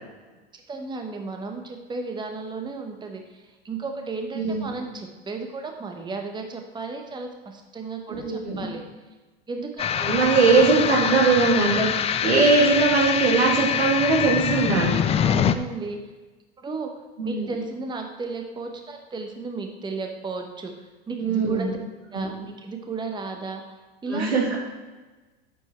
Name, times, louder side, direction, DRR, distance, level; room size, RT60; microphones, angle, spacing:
voice 1, 0.5-8.8 9.5-9.9 15.2-16.0 16.6-16.9 17.2-20.7 21.1-21.7 22.1-23.7 24.0-24.4, right 4 dB, 15° right, 4 dB, 1.1 m, -34 dB
voice 2, 4.3-4.7 8.1-8.7 10.0-14.9 17.2-17.6 21.2-21.7 22.1-22.3 24.1-24.6, right 4 dB, 85° right, -3 dB, 2.6 m, -21 dB
sound 1, 9.8-15.5, left 8 dB, 20° left, 0.4 m, -24 dB
8.8 x 7.4 x 4.5 m, 1.2 s
hypercardioid pair, 90°, 31 cm